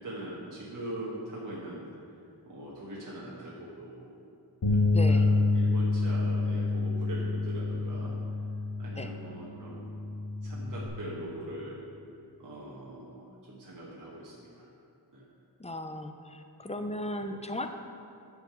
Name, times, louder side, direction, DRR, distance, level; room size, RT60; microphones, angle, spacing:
voice 1, 0.0-1.8 2.4-4.1 4.7-4.8 5.1-8.2 8.8-9.9 10.4-11.9 12.4-14.7 15.1-15.3, right 1 dB, 50° right, -5 dB, 1.5 m, -42 dB
Bass guitar, 4.6-10.9, left 3 dB, 75° left, 1.6 m, -28 dB
voice 2, 4.9-5.3 9.0-9.1 15.6-17.7, left 1 dB, 15° left, 6 dB, 0.7 m, -36 dB
10.5 x 5.0 x 6.9 m, 2.6 s
wide cardioid pair, 60°, 41 cm